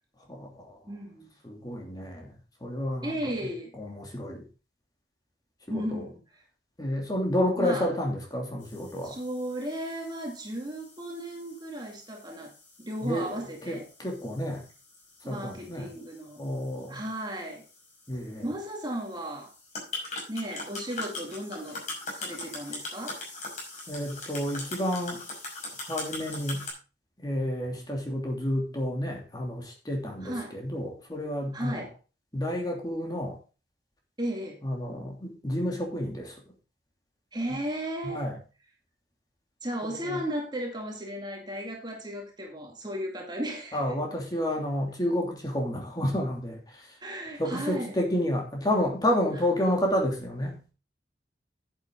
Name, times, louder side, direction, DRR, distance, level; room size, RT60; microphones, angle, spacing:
voice 1, 0.3-0.8 1.4-2.3 2.6-3.2 3.8-4.4 5.7-6.1 6.8-9.2 13.0-13.3 13.7-14.6 15.2-15.9 16.4-17.0 18.1-18.4 23.9-25.2 25.9-26.6 27.2-31.8 32.3-33.4 34.6-36.3 38.0-38.4 39.9-40.2 43.7-46.9 47.4-50.7, left 1 dB, 20° left, 1 dB, 2.9 m, -30 dB
voice 2, 0.9-1.3 3.0-3.7 5.7-6.2 7.6-7.9 9.0-12.5 12.8-13.9 15.2-16.4 16.9-17.7 18.4-19.5 20.3-21.9 22.1-23.2 30.2-30.6 31.5-32.0 34.2-34.6 37.3-38.3 39.6-43.9 47.0-48.0, right 1 dB, 25° right, 1 dB, 2.3 m, -35 dB
sound 1, 8.6-26.7, left 2 dB, 40° left, 5.8 m, -42 dB
11.0 x 8.2 x 3.8 m, 0.32 s
head